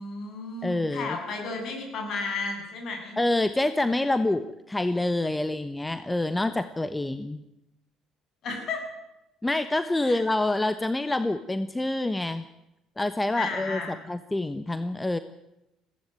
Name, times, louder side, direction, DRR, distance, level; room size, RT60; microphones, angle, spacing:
voice 1, 0.0-3.2 8.4-8.9 10.0-10.2 13.3-14.0, left 4 dB, 50° left, 2 dB, 7.9 m, -33 dB
voice 2, 0.6-1.2 3.2-7.4 9.4-12.4 13.0-13.8 14.1-15.2, left 2 dB, 15° left, 11 dB, 1.2 m, -27 dB
21.0 x 17.0 x 9.3 m, 0.90 s
figure-of-eight pair, 55°, 0 cm